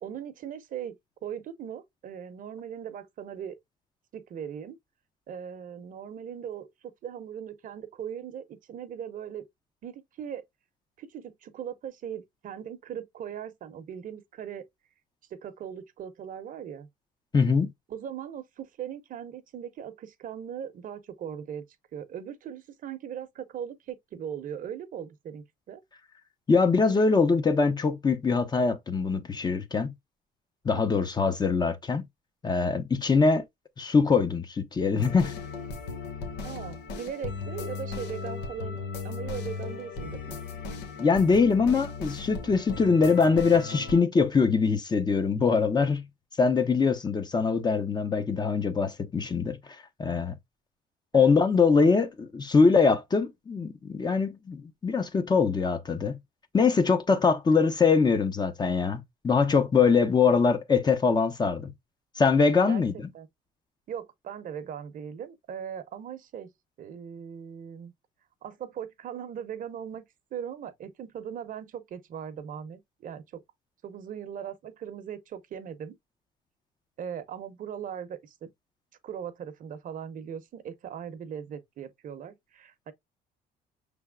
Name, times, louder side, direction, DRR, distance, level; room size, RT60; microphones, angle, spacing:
voice 1, 0.0-1.0 1.2-3.6 4.1-4.8 5.3-9.4 9.8-10.4 11.0-14.6 15.3-16.9 17.9-21.6 21.9-25.8 30.7-30.9 36.4-38.8 39.0-40.4 51.1-51.3 62.7-62.8 63.1-63.3 63.9-66.5 66.8-67.9 68.4-70.0 70.3-73.4 73.8-75.9 77.0-78.5 79.0-82.9, right 8 dB, 55° right, 0.8 m, -39 dB
voice 2, 17.3-17.7 26.5-29.9 30.6-32.0 32.4-33.4 33.8-35.3 41.0-46.0 46.4-49.6 50.0-50.4 51.1-56.2 56.5-61.7 62.2-62.9, left 5 dB, 25° left, 0.7 m, -23 dB
sound 1, 35.0-44.0, left 5 dB, 90° left, 1.1 m, -37 dB
5.7 x 3.4 x 2.2 m
cardioid pair, 110°, 17 cm